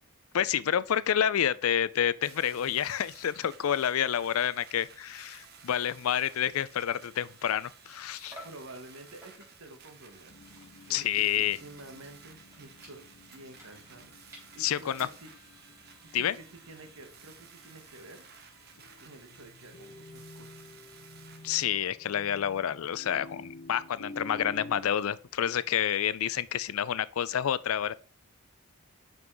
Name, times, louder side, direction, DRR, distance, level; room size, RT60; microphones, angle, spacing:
voice 1, 0.3-8.4 10.9-11.6 14.6-15.1 16.1-16.3 21.4-27.9, left 9 dB, 80° left, 0.4 m, -29 dB
sound 1, 2.2-21.6, right 6 dB, 50° right, 1.0 m, -55 dB
sound 2, 4.8-4.9 5.1-5.4 5.8-7.8 8.3-8.7 9.2-9.7 10.1-15.6, equal, 15° right, 3.6 m, -54 dB
voice 2, 8.4-10.4 10.9-14.1 14.5-15.3 16.2-18.2 19.0-20.7, right 2 dB, 85° right, 1.6 m, -49 dB
sound 3, 10.3-24.8, left 2 dB, 65° left, 0.9 m, -50 dB
6.0 x 5.5 x 4.7 m
head